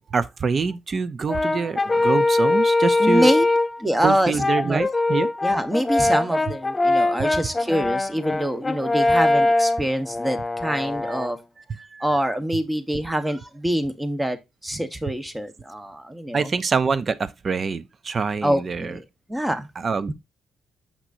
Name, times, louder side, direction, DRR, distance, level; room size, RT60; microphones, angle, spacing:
voice 1, 0.1-3.3 4.0-5.3 11.0-11.2 11.7-12.1 16.3-19.0 19.8-20.1, right 5 dB, 40° right, 0.6 m, -25 dB
Brass instrument, 1.3-3.8 4.4-11.3, left 2 dB, 20° left, 0.5 m, -22 dB
voice 2, 3.0-3.5 3.8-4.4 4.6-4.8 5.4-11.4 12.0-14.4 14.6-16.5 18.4-19.0 19.3-19.7 20.1-20.2, equal, 10° right, 1.1 m, -25 dB
6.8 x 5.9 x 2.6 m
cardioid pair, 90°, 0 cm